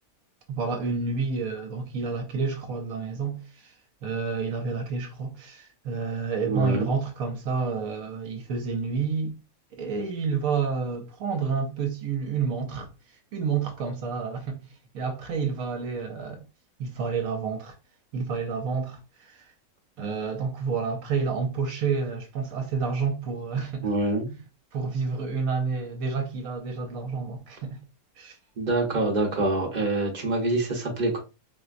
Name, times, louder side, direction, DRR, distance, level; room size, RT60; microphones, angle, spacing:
voice 1, 0.5-3.7 4.0-9.4 9.7-12.9 13.3-14.6 14.9-16.4 16.8-17.7 18.1-19.5 20.0-23.9 24.3-24.4 24.7-27.8 28.2-28.4, right 5 dB, 75° right, 1.1 m, -29 dB
voice 2, 6.5-7.0 23.8-24.3 28.6-31.2, right 2 dB, 40° right, 0.8 m, -26 dB
3.9 x 2.1 x 2.4 m
omnidirectional pair, 1.5 m